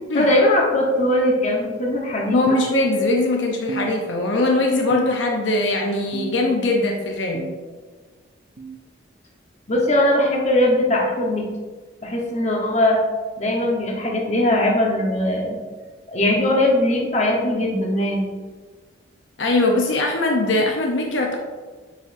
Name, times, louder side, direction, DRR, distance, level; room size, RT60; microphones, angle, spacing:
voice 1, 0.1-2.6 9.7-11.5 12.0-13.0 13.4-15.6 16.1-18.2, left 1 dB, 35° left, -2 dB, 1.1 m, -20 dB
voice 2, 2.3-7.5 19.4-21.4, left 2 dB, 75° left, 1 dB, 0.7 m, -21 dB
sound 1, 2.5-3.3 3.7-4.5 4.9-5.5 6.1-6.7 7.3-7.7 8.6-8.8 9.8-10.0 11.0-11.2 12.2-12.4 13.4-13.6 14.7-14.8 15.9-16.0 17.1-17.2, right 5 dB, 45° right, 0.4 m, -33 dB
7.7 x 4.9 x 2.6 m, 1.4 s
head